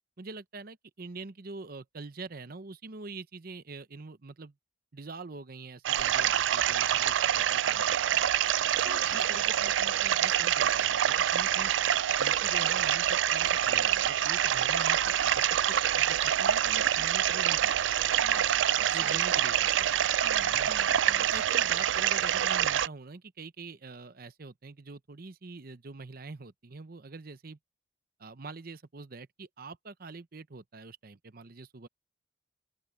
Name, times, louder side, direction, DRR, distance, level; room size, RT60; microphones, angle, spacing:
voice 1, 0.2-4.5 4.9-8.2 8.9-11.7 12.2-17.9 18.9-19.9 20.5-20.7 21.2-27.6 28.2-31.9, right 3 dB, 50° right, 0.8 m, -45 dB
sound 1, 5.8-22.9, right 10 dB, 75° right, 0.4 m, -26 dB
voice 2, 8.6-9.2 18.1-19.2 20.2-21.2, right 2 dB, 15° right, 0.7 m, -48 dB
open air
head